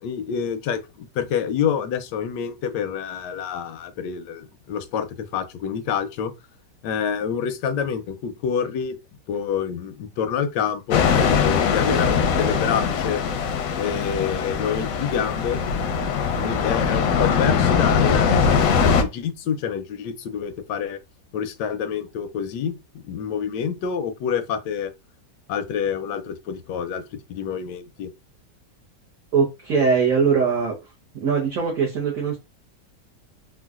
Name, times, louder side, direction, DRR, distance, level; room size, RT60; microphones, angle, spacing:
voice 1, 0.0-6.3 6.8-8.9 9.3-13.2 13.8-15.6 16.4-21.0 21.3-22.8 23.1-24.9 25.5-27.0 27.3-28.1, left 7 dB, 90° left, 1.2 m, -27 dB
sound 1, 10.9-19.0, left 6 dB, 70° left, 0.9 m, -21 dB
voice 2, 29.3-30.8 31.2-32.4, right 5 dB, 60° right, 1.1 m, -21 dB
3.7 x 2.2 x 2.3 m
omnidirectional pair, 1.8 m